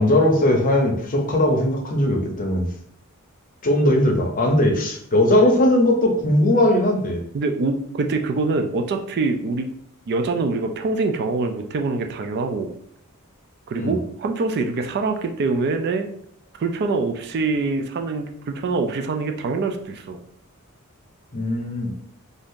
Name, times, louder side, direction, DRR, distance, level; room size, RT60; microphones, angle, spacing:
voice 1, 0.0-2.7 3.6-7.2 13.8-14.0 21.3-21.9, left 1 dB, 40° left, 2 dB, 0.6 m, -19 dB
voice 2, 7.3-9.7 10.1-12.7 13.7-16.1 16.6-20.2, right 3 dB, 50° right, 6 dB, 0.3 m, -24 dB
2.6 x 2.4 x 3.6 m, 0.64 s
head